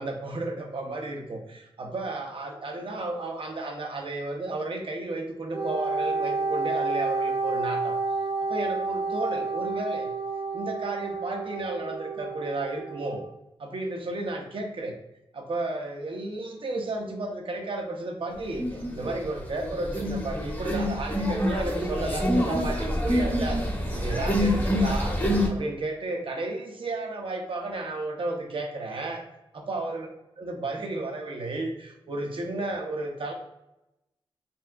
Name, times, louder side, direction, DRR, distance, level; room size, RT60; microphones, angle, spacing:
voice 1, 0.0-8.0 8.5-10.1 10.5-13.2 13.6-15.0 15.3-23.6 23.9-25.2 25.5-29.2 29.5-30.1 30.4-33.3, right 2 dB, 65° right, 2 dB, 0.8 m, -33 dB
Wind instrument woodwind instrument, 5.5-13.2, right 4 dB, 25° right, 0.8 m, -30 dB
sound 1, 18.6-19.2 19.5-25.5, equal, 20° left, 0.9 m, -26 dB
4.1 x 3.5 x 2.3 m, 0.91 s
wide cardioid pair, 80°, 10 cm